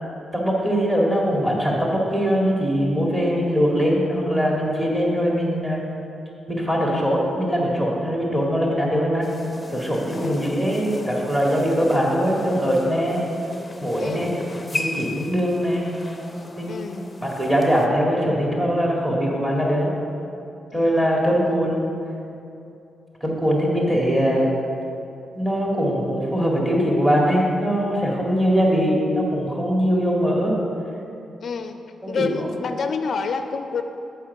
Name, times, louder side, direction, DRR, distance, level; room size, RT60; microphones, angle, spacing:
voice 1, 0.3-5.9 6.5-9.3 9.7-13.2 13.8-14.4 14.7-15.9 16.4-16.8 17.2-19.9 20.7-21.8 23.2-24.5 25.3-30.6 32.1-32.5, equal, 20° right, -3 dB, 1.9 m, -21 dB
sound 1, 9.2-17.9, left 2 dB, 20° left, 0.6 m, -35 dB
voice 2, 10.1-10.5 14.0-14.5 16.7-17.1 20.7-21.9 31.4-31.8 32.1-33.8, left 5 dB, 55° left, 7 dB, 0.4 m, -29 dB
7.5 x 4.6 x 6.7 m, 2.7 s
cardioid pair, 90°, 0 cm